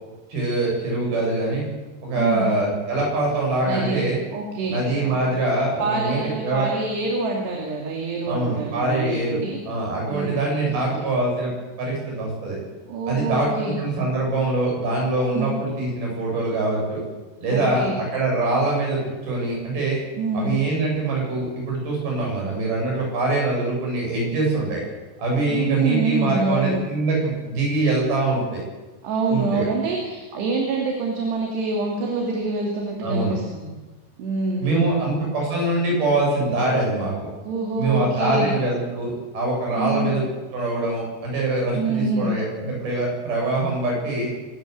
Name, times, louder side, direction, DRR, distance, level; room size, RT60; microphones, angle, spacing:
voice 1, 0.3-1.7 2.0-4.2 4.7-6.7 8.3-9.4 9.7-11.5 11.8-12.6 13.1-17.0 17.4-20.0 20.3-24.8 25.2-28.6 29.3-29.7 33.0-33.3 34.6-37.1 37.8-40.2 40.5-44.3, right 2 dB, 60° right, -2 dB, 9.2 m, -23 dB
voice 2, 2.1-2.5 3.6-4.0 4.3-4.8 5.0-5.4 5.8-9.6 10.1-11.1 12.9-13.8 15.4-15.5 17.5-18.0 20.2-20.6 25.5-26.8 29.0-33.7 34.2-35.1 37.4-38.5 39.7-40.1 41.7-42.3, right 3 dB, 75° right, 0 dB, 4.8 m, -26 dB
25.0 x 13.5 x 8.1 m, 1.2 s
omnidirectional pair, 4.8 m